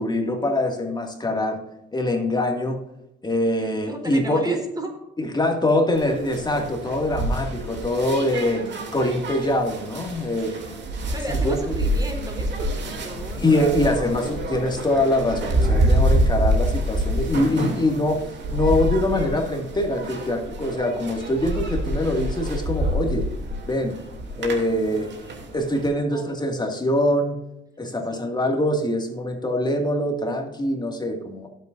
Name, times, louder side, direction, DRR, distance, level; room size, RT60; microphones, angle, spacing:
voice 1, 0.0-1.6 1.9-2.8 3.2-4.6 5.2-8.6 8.9-10.5 11.4-11.7 13.4-18.2 18.5-23.3 23.6-24.0 24.4-25.1 25.5-27.4 27.8-31.5, left 1 dB, 20° left, 2 dB, 2.3 m, -23 dB
voice 2, 3.6-4.9 10.5-14.2 15.8-15.9 26.1-26.3 28.1-28.6, right 1 dB, 20° right, 3 dB, 3.7 m, -36 dB
sound 1, 5.9-25.9, right 1 dB, 65° right, 3.0 m, -27 dB
18.0 x 8.1 x 2.7 m, 0.90 s
cardioid pair, 90°, 20 cm